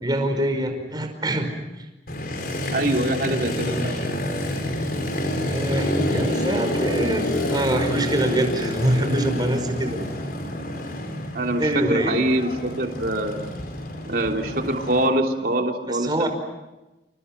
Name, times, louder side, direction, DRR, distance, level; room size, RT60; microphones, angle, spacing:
voice 1, 0.0-1.5 1.8-1.9 3.3-4.0 5.5-10.0 11.6-12.2 15.9-16.3, right 1 dB, 25° right, 5 dB, 5.2 m, -25 dB
Motorcycle, 2.1-15.1, left 1 dB, 55° left, 5.3 m, -28 dB
voice 2, 2.7-4.0 11.3-13.4 14.1-16.3, right 1 dB, 55° right, 2 dB, 3.2 m, -24 dB
30.0 x 29.0 x 6.0 m, 1.0 s
head